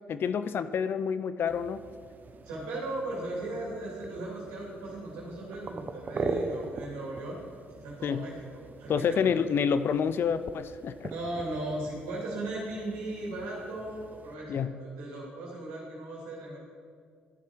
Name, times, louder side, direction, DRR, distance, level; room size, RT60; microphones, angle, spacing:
voice 1, 0.1-1.8 8.0-8.3 8.9-11.1 14.5-14.7, left 7 dB, 55° left, 13 dB, 0.5 m, -28 dB
sound 1, 1.5-14.3, right 3 dB, 40° right, 0.8 m, -41 dB
voice 2, 2.4-7.4 7.7-9.3 11.0-16.6, right 2 dB, 85° right, -4 dB, 2.9 m, -37 dB
12.0 x 7.3 x 4.6 m, 2.1 s
hypercardioid pair, 55°, 4 cm